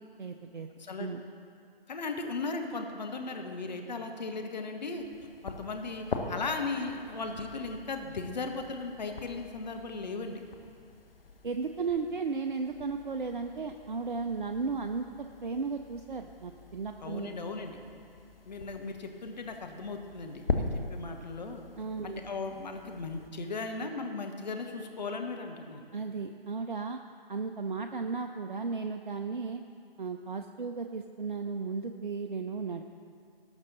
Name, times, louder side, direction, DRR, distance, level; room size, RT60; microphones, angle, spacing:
voice 1, 0.2-0.7 1.0-1.2 11.4-17.3 21.8-22.2 25.9-27.0 27.3-29.6 30.0-32.8, right 4 dB, 55° right, 6 dB, 0.6 m, -35 dB
voice 2, 0.8-1.1 1.9-5.1 5.4-10.4 17.0-17.8 18.4-21.6 22.0-25.9, left 3 dB, 45° left, 4 dB, 1.2 m, -37 dB
sound 1, 5.0-23.3, left 3 dB, 70° left, 1.3 m, -42 dB
18.0 x 6.2 x 4.1 m, 2.5 s
figure-of-eight pair, 145°, 30 cm